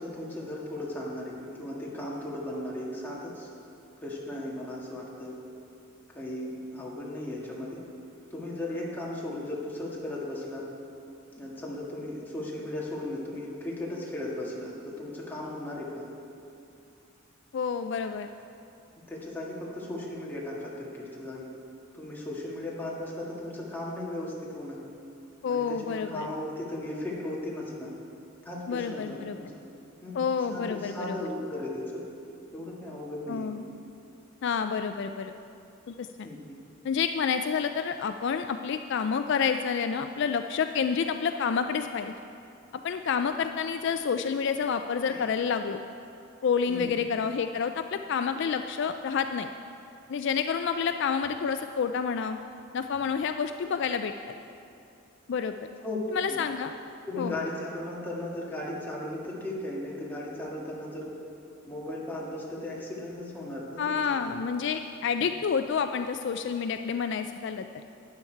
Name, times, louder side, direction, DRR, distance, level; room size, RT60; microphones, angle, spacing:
voice 1, 0.0-1.3 1.6-3.5 4.0-5.4 6.1-7.8 8.3-10.6 11.4-16.1 19.1-21.5 21.9-24.8 25.5-27.9 28.4-29.5 30.0-30.2 30.5-32.0 32.5-33.5 36.2-36.6 45.1-45.2 46.7-46.9 55.8-56.0 56.3-56.4 57.1-61.1 61.7-64.3 65.2-65.3, left 1 dB, 10° left, -5 dB, 1.8 m, -36 dB
voice 2, 17.5-18.3 25.4-26.3 28.7-29.4 30.1-31.2 33.3-33.6 34.4-35.3 35.9-36.3 36.8-42.1 42.8-45.8 46.4-49.5 50.1-52.4 52.7-54.1 55.3-55.5 56.1-56.7 57.2-57.4 63.8-67.7, left 6 dB, 55° left, 8 dB, 0.3 m, -29 dB
12.5 x 9.7 x 4.6 m, 2.6 s
head